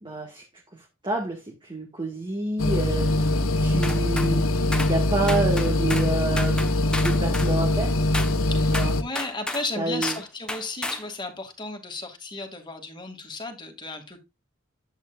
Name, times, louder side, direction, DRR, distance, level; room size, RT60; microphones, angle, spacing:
voice 1, 0.0-0.4 0.7-4.4 4.9-7.9 8.7-8.9 9.8-10.2, right 2 dB, 25° right, 1.7 m, -29 dB
sound 1, 2.6-9.0, left 1 dB, 90° left, 1.2 m, -23 dB
sound 2, 3.8-4.3 4.7-4.9 5.3-6.1 6.4-7.5 8.1-8.3 8.7-9.7 10.0-10.2 10.5-11.0, left 1 dB, 5° left, 1.0 m, -31 dB
voice 2, 8.5-14.2, left 3 dB, 20° left, 2.3 m, -34 dB
10.5 x 8.4 x 2.4 m
head